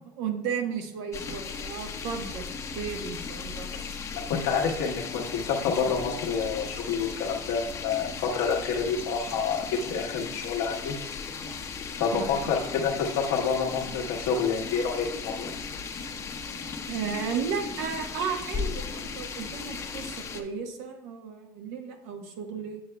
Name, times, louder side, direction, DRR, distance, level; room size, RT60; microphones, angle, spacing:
voice 1, 0.2-2.5 2.7-3.7 12.1-12.5 16.8-22.8, right 6 dB, 80° right, 4 dB, 1.1 m, -34 dB
sound 1, 1.1-20.4, left 5 dB, 30° left, 0.7 m, -37 dB
voice 2, 4.3-11.0 11.9-15.6, left 6 dB, 80° left, -1 dB, 1.1 m, -28 dB
8.1 x 7.0 x 2.2 m, 0.87 s
supercardioid pair, 120°, 10 cm